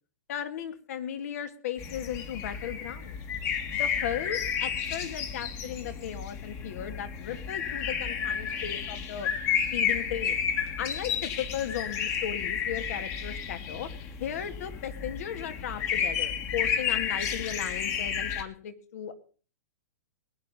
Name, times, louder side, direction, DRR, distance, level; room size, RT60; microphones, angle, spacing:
voice 1, 0.3-3.2 3.7-9.3 9.7-10.4 10.8-13.9 14.2-19.1, left 9 dB, 60° left, 10 dB, 2.0 m, -36 dB
sound 1, 1.8-18.4, left 7 dB, 30° left, 1.8 m, -32 dB
20.5 x 9.1 x 5.4 m, 0.40 s
hypercardioid pair, 140°, 9 cm